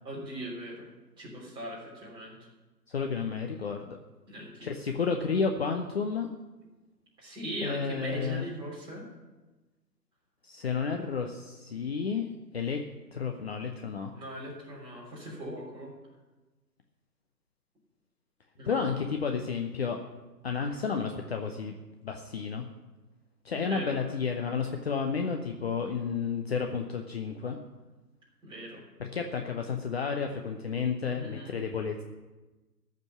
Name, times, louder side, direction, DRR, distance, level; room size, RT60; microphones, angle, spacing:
voice 1, 0.0-0.8 1.2-2.5 4.3-4.7 7.2-9.0 14.1-15.9 18.6-18.8 23.5-23.9 28.4-28.8 31.1-31.5, right 1 dB, 10° right, -6 dB, 3.4 m, -39 dB
voice 2, 2.9-4.0 4.6-6.3 7.6-8.5 10.4-12.8 13.1-14.1 18.7-20.0 20.4-21.7 22.0-22.7 23.4-27.6 29.0-32.0, left 5 dB, 40° left, 3 dB, 0.8 m, -31 dB
14.0 x 5.3 x 9.2 m, 1.2 s
figure-of-eight pair, 140°, 50 cm